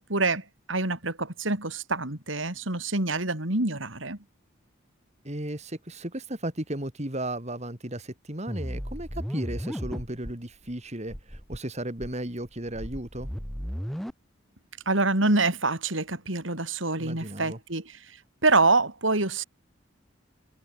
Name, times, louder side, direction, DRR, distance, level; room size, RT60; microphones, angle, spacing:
voice 1, 0.1-4.2 14.9-17.8 18.4-19.4, right 3 dB, 75° right, 4.5 m, -26 dB
voice 2, 5.2-13.3 17.0-17.6, right 1 dB, 35° right, 3.2 m, -35 dB
sound 1, 8.5-10.3 10.7-10.8 11.1-11.6 12.0-14.1, equal, ahead, 1.8 m, -35 dB
head